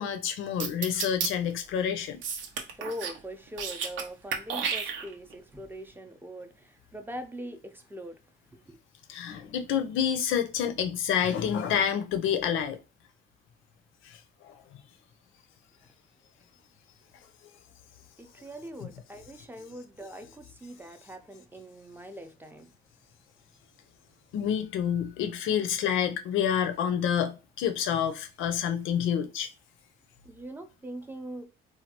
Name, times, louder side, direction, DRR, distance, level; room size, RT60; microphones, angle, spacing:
voice 1, 0.0-2.2 9.1-12.8 14.1-14.2 14.4-14.6 18.8-18.9 24.3-29.5, left 8 dB, 85° left, 0.5 m, -28 dB
sound 1, 0.6-1.3 2.2-3.2 3.5-4.0 4.3-5.3, right 6 dB, 70° right, 0.6 m, -31 dB
voice 2, 2.4-8.2 8.5-8.8 18.2-22.7 30.2-31.5, equal, 10° right, 0.5 m, -42 dB
3.2 x 2.3 x 2.8 m
cardioid pair, 90°, 20 cm